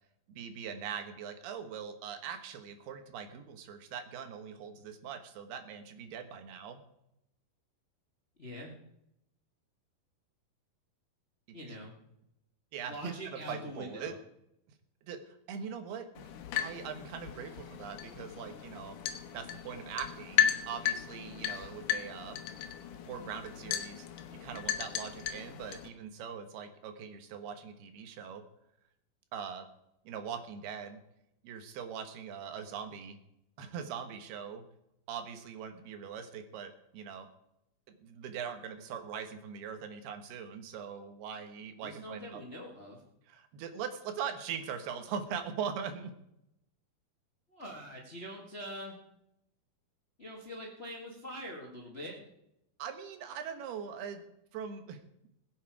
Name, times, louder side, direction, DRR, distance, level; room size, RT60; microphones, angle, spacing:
voice 1, 0.3-6.8 11.7-11.8 12.7-14.1 15.0-16.3 16.5-19.0 19.3-22.4 23.1-24.1 24.4-28.4 29.3-29.7 30.0-31.0 31.4-33.2 33.6-34.6 35.1-37.3 37.9-42.4 43.3-46.1 52.8-54.2 54.5-55.0, right 7 dB, 85° right, 7 dB, 3.3 m, -41 dB
voice 2, 8.4-8.7 11.5-11.9 12.9-14.1 41.8-43.0 47.5-48.9 50.2-52.3, equal, 35° left, -1 dB, 1.0 m, -44 dB
sound 1, 16.2-25.9, left 10 dB, 70° left, 2.4 m, -35 dB
21.0 x 8.3 x 4.8 m, 0.81 s
omnidirectional pair, 4.5 m